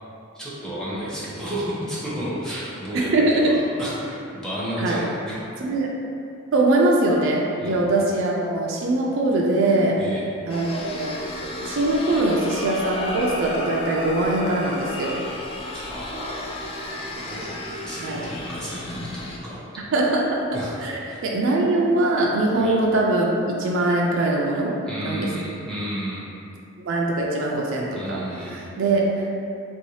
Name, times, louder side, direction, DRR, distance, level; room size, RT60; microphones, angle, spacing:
voice 1, 0.3-5.4 7.6-7.9 10.0-10.2 15.7-17.5 17.9-19.6 20.5-20.7 21.1-21.2 22.6-22.8 24.9-26.3 27.9-28.7, equal, 5° left, -9 dB, 0.7 m, -32 dB
voice 2, 2.9-3.6 4.8-5.0 5.6-5.9 6.5-10.0 10.5-11.1 11.6-15.2 18.0-18.2 19.8-20.5 20.8-24.7 25.0-25.3 26.8-29.3, right 2 dB, 65° right, -2 dB, 0.4 m, -22 dB
sound 1, 10.5-19.4, left 1 dB, 25° left, 0.3 m, -33 dB
3.0 x 2.7 x 3.2 m, 2.5 s
head